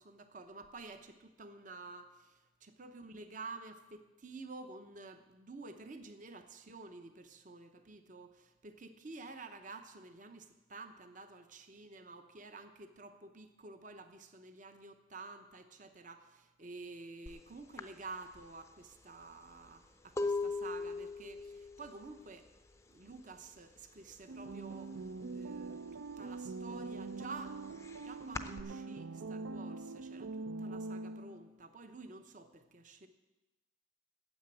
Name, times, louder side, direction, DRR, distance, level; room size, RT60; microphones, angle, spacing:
voice 1, 0.0-22.5 22.9-27.6 28.0-33.1, right 3 dB, 40° right, 8 dB, 0.8 m, -50 dB
sound 1, 17.3-17.4 17.8-23.5 23.7-24.2 24.5-25.6 26.0-28.6, left 3 dB, 15° left, 0.5 m, -40 dB
sound 2, 24.3-31.6, right 3 dB, 75° right, 0.5 m, -43 dB
9.3 x 7.7 x 8.6 m, 1.1 s
head